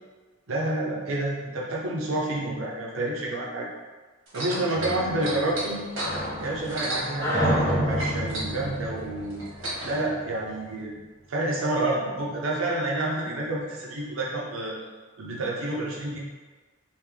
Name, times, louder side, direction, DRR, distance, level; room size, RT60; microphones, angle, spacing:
voice 1, 0.5-3.7 4.3-5.8 6.4-9.4 9.8-10.9 11.3-14.8 15.2-16.2, right 2 dB, 90° right, -3 dB, 0.7 m, -29 dB
sound 1, 4.3-7.7 8.0-10.0 10.8-10.9, right 2 dB, 70° right, 1.5 m, -34 dB
sound 2, 4.8-10.2, equal, 20° left, 0.8 m, -29 dB
3.3 x 2.6 x 3.5 m, 1.3 s
head